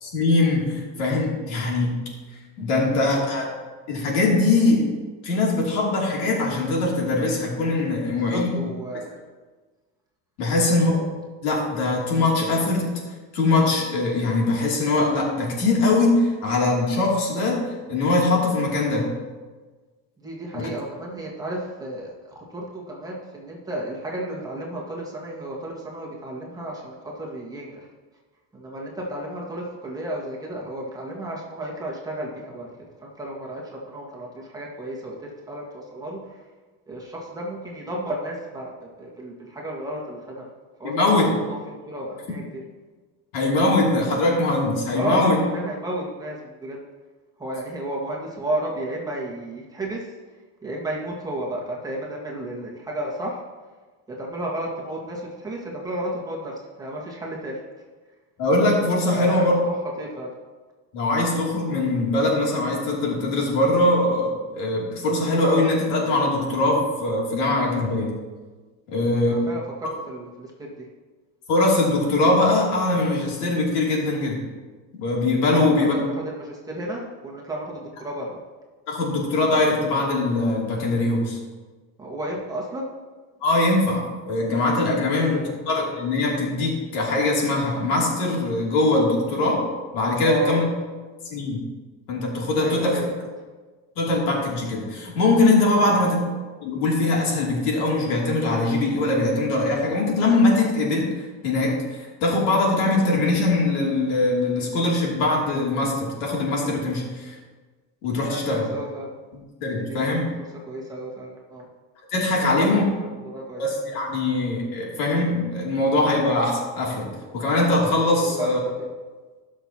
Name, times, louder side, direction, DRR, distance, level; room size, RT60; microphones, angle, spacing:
voice 1, 0.0-1.9 2.6-3.4 3.9-4.9 5.2-8.5 10.4-11.0 11.4-12.9 13.3-17.6 17.9-19.1 20.5-20.7 40.8-41.3 43.3-45.4 58.4-59.5 60.9-68.1 68.9-69.5 71.5-74.4 74.9-75.9 78.9-81.4 83.4-89.6 89.9-90.6 91.3-91.6 92.1-93.0 94.0-96.2 96.6-101.1 101.4-107.3 108.0-108.7 109.6-110.2 112.1-112.8 113.6-117.1 117.3-118.6, left 2 dB, 90° left, -2 dB, 2.9 m, -22 dB
voice 2, 2.6-3.2 8.1-9.1 10.5-10.6 20.2-27.9 28.5-32.7 33.0-36.4 36.9-38.7 39.0-40.5 40.8-41.6 41.9-42.6 44.9-46.8 47.4-50.1 50.6-53.4 54.2-57.6 59.1-60.3 69.2-70.9 75.5-75.9 76.2-78.4 82.0-82.9 85.1-85.5 90.2-90.7 92.6-93.1 95.8-96.0 103.0-103.1 108.3-109.1 109.6-110.3 110.6-111.7 112.4-113.6 117.0-117.2 118.2-118.9, right 1 dB, 10° right, -4 dB, 1.7 m, -33 dB
18.0 x 6.3 x 2.9 m, 1.3 s
cardioid pair, 155°, 36 cm